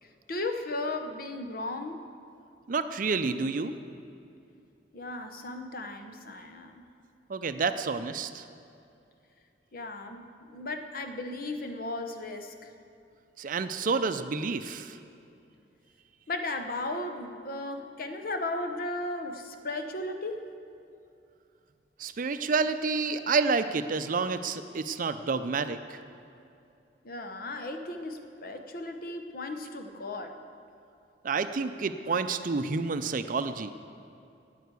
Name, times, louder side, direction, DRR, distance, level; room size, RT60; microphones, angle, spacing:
voice 1, 0.0-2.0 4.9-6.8 9.7-12.7 16.3-20.4 27.0-30.4, left 2 dB, 55° left, 6 dB, 0.9 m, -36 dB
voice 2, 2.7-3.7 7.3-8.4 13.4-15.0 22.0-26.0 31.2-33.7, right 4 dB, 50° right, 10 dB, 0.5 m, -29 dB
9.2 x 9.2 x 8.2 m, 2.6 s
head